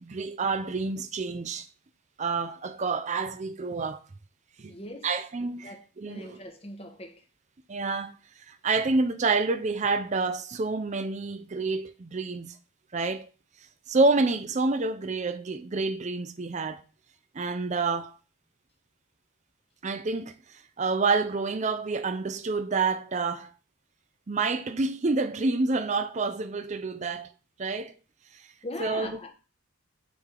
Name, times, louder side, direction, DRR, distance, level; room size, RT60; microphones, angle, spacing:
voice 1, 0.0-1.7 2.2-4.0 4.6-4.8 5.0-6.4 7.7-8.1 8.5-12.6 12.9-13.3 13.9-16.8 17.3-18.1 19.8-20.3 20.8-23.5 24.3-27.3 27.6-27.9 28.8-29.2, right 3 dB, 35° right, 0.4 m, -28 dB
voice 2, 4.7-5.1 5.6-7.2 28.6-29.3, left 2 dB, 25° left, 1.0 m, -40 dB
9.3 x 3.4 x 3.7 m
head